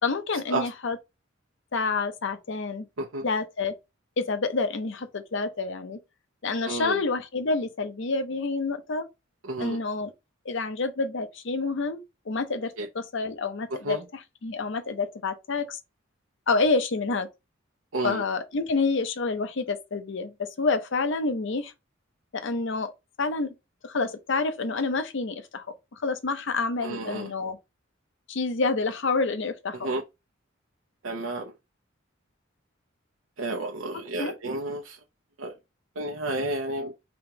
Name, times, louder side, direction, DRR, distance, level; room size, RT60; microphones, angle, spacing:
voice 1, 0.0-1.0 1.7-2.8 3.2-3.7 4.2-6.0 6.4-9.0 9.6-10.1 10.4-15.8 16.5-17.3 18.0-21.7 22.3-22.9 23.2-23.5 23.8-25.7 26.0-27.6 28.3-29.9 34.2-34.3, left 3 dB, 65° left, 0.7 m, -28 dB
voice 2, 6.7-7.0 9.5-9.8 12.8-12.9 13.8-14.0 17.9-18.2 26.8-27.3 29.7-30.0 31.0-31.5 33.4-35.0 35.4-35.5 36.0-36.9, right 2 dB, 80° right, 0.7 m, -31 dB
3.6 x 2.9 x 4.6 m
head